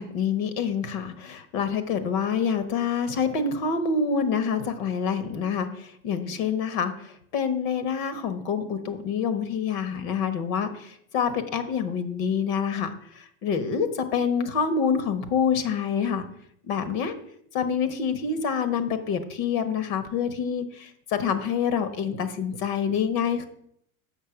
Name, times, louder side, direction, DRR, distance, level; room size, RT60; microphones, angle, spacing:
voice 1, 0.0-16.2 16.7-17.2 17.5-23.5, left 6 dB, 70° left, 10 dB, 1.3 m, -27 dB
6.7 x 5.9 x 5.7 m, 0.70 s
supercardioid pair, 110°, 41 cm